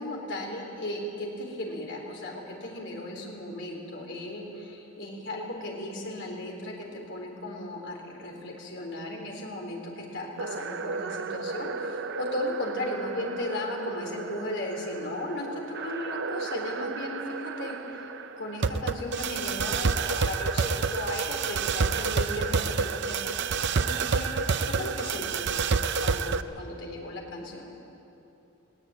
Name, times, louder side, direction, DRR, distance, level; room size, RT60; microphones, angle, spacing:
voice 1, 0.0-18.1 18.4-23.4 23.8-25.7 26.0-27.7, left 1 dB, 55° left, 0 dB, 4.0 m, -36 dB
sound 1, 10.4-26.4, right 5 dB, 55° right, 0.6 m, -30 dB
19.5 x 17.5 x 9.1 m, 3.0 s
head